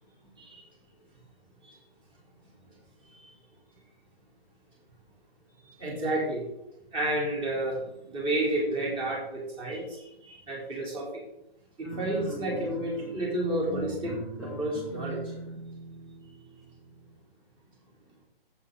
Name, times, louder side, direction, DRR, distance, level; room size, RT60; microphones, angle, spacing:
voice 1, 5.7-6.5 6.9-11.2 11.8-15.3, right 1 dB, 15° right, -3 dB, 3.7 m, -31 dB
sound 1, 11.8-17.2, right 1 dB, ahead, 1.3 m, -41 dB
11.0 x 8.4 x 3.8 m, 0.83 s
figure-of-eight pair, 140°, 30 cm